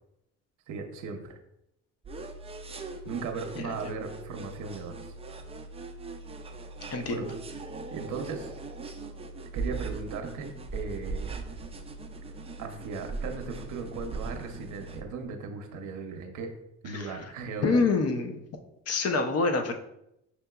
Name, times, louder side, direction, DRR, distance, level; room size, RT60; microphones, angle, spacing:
voice 1, 0.7-1.4 3.1-5.0 7.0-7.2 7.9-8.5 9.5-11.3 12.6-16.5 16.8-17.8, right 4 dB, 80° right, 4 dB, 0.6 m, -37 dB
sound 1, 2.0-15.0, right 3 dB, 20° right, 0.4 m, -39 dB
voice 2, 6.9-7.3 16.9-17.2 17.6-18.4 18.9-19.7, left 4 dB, 55° left, 6 dB, 0.6 m, -26 dB
5.9 x 2.8 x 2.3 m, 0.82 s
cardioid pair, 90°, 30 cm